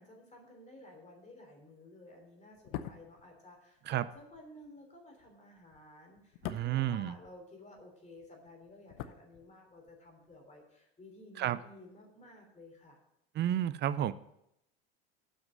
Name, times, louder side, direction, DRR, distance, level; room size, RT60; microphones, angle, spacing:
voice 1, 0.0-13.0, left 1 dB, 20° left, 2 dB, 3.4 m, -54 dB
sound 1, 2.5-7.9 8.1-10.0 10.2-10.4, left 11 dB, 60° left, 0.8 m, -46 dB
voice 2, 6.4-7.2 11.4-11.6 13.3-14.1, right 11 dB, 35° right, 16 dB, 0.5 m, -31 dB
7.2 x 6.3 x 7.8 m, 0.80 s
hypercardioid pair, 85°, 31 cm